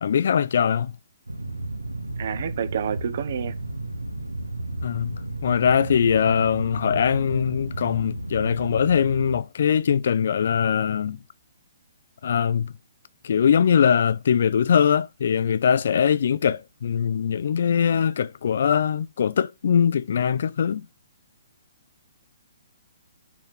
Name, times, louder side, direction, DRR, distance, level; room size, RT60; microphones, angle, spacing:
voice 1, 0.0-0.9 4.8-11.2 12.2-12.7 13.2-20.9, left 7 dB, 55° left, 0.4 m, -22 dB
sound 1, 1.3-9.4, right 2 dB, 85° right, 1.1 m, -33 dB
voice 2, 2.2-3.5, right 8 dB, 50° right, 1.0 m, -29 dB
6.0 x 4.4 x 5.8 m
figure-of-eight pair, 125°, 0 cm